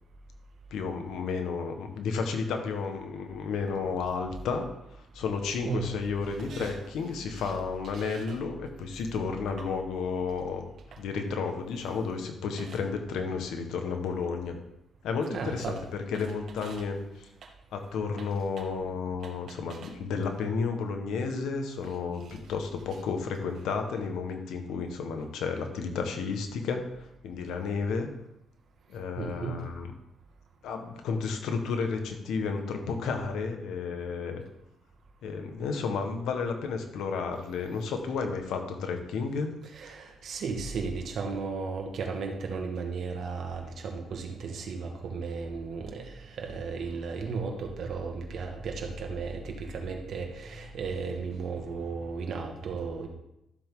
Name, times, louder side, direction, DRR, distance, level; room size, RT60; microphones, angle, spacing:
voice 1, 0.7-4.7 5.1-10.6 11.0-14.5 15.0-17.3 17.7-28.1 28.9-29.9 30.6-34.4 35.2-39.5, left 5 dB, 80° left, 5 dB, 1.6 m, -32 dB
voice 2, 6.4-6.7 7.9-8.2 12.6-12.7 15.3-15.8 16.6-16.8 19.7-19.9 22.2-22.3 29.2-29.6 39.7-53.1, right 4 dB, 65° right, 2 dB, 2.0 m, -35 dB
13.0 x 7.6 x 3.9 m, 0.85 s
cardioid pair, 90°, 0 cm